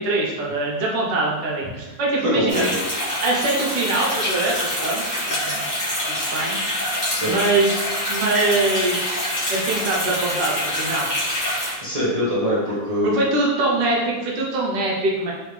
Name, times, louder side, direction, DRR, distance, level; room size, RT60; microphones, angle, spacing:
voice 1, 0.0-2.6 3.2-5.6 6.2-6.6 7.2-9.2 9.5-11.1 13.0-15.3, right 2 dB, 70° right, -3 dB, 1.5 m, -23 dB
voice 2, 2.2-2.7 7.1-7.4 11.8-13.2, equal, 25° right, -9 dB, 1.0 m, -23 dB
sound 1, 2.5-11.7, equal, 25° left, 1.2 m, -26 dB
Trumpet, 5.6-10.9, left 6 dB, 65° left, 0.9 m, -38 dB
3.7 x 3.5 x 3.3 m, 1.2 s
omnidirectional pair, 2.0 m